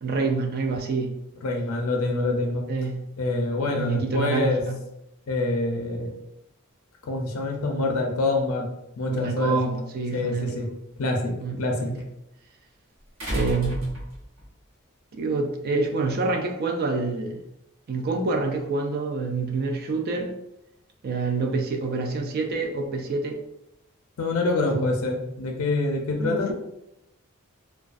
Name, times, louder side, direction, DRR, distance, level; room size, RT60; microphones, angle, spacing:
voice 1, 0.0-1.1 2.7-3.0 3.6-4.8 9.1-10.6 11.4-12.0 13.3-14.0 15.1-17.4 17.9-20.3 21.0-23.4 24.7-24.9 26.2-26.5, right 3 dB, 45° right, 3 dB, 0.3 m, -27 dB
voice 2, 1.4-2.6 3.2-4.6 5.3-6.1 7.1-8.7 9.0-9.6 10.1-10.7 11.0-11.9 24.2-26.5, left 2 dB, 70° left, 2 dB, 0.4 m, -26 dB
sound 1, 9.9-10.0 13.2-14.5 15.8-15.9, equal, 65° right, 0.8 m, -31 dB
2.4 x 2.2 x 2.4 m, 0.85 s
head